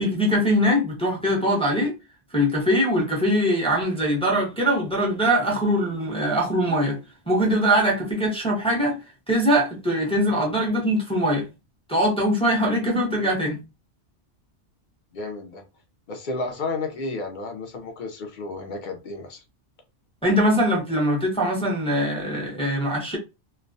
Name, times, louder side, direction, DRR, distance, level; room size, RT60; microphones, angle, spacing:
voice 1, 0.0-1.9 2.3-7.0 7.3-9.0 9.3-11.5 11.9-13.6 20.2-23.2, equal, 5° left, 0.5 m, -22 dB
voice 2, 15.1-15.6 16.1-19.4, left 3 dB, 55° left, 0.6 m, -32 dB
2.3 x 2.1 x 2.5 m
omnidirectional pair, 1.2 m